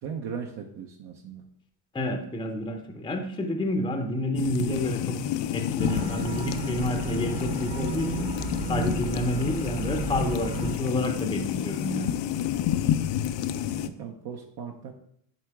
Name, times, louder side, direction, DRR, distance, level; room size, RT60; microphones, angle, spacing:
voice 1, 0.0-1.5 13.4-14.9, right 7 dB, 55° right, 1 dB, 0.9 m, -38 dB
voice 2, 1.9-5.2 5.5-8.3 8.7-12.1, left 1 dB, 10° left, 5 dB, 0.7 m, -29 dB
sound 1, 4.3-13.9, left 11 dB, 60° left, 0.6 m, -30 dB
sound 2, 5.8-10.8, right 5 dB, 25° right, 1.0 m, -34 dB
10.5 x 3.8 x 3.5 m, 0.68 s
cardioid pair, 105°, 48 cm